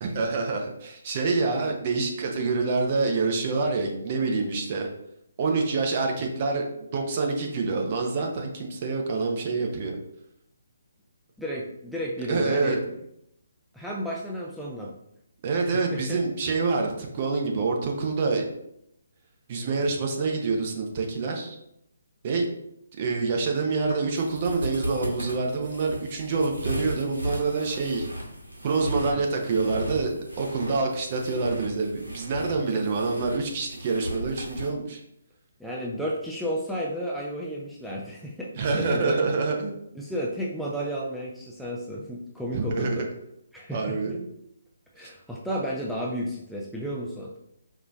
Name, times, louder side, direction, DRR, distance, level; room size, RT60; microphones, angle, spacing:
voice 1, 0.0-4.9 5.4-6.6 6.9-10.0 12.3-12.8 15.4-18.4 19.5-21.6 22.2-22.5 23.0-28.1 28.6-35.0 38.5-39.7 42.5-43.1 43.7-44.3 45.0-45.1, right 4 dB, 35° right, 1 dB, 0.6 m, -26 dB
voice 2, 11.4-12.8 13.7-14.9 15.6-16.2 32.7-32.8 35.6-39.2 39.9-43.1 43.5-44.1 44.9-47.3, equal, ahead, -5 dB, 0.4 m, -32 dB
sound 1, 23.8-34.7, equal, 80° right, 1.2 m, -36 dB
4.8 x 2.6 x 2.3 m, 0.77 s
figure-of-eight pair, 140°, 0 cm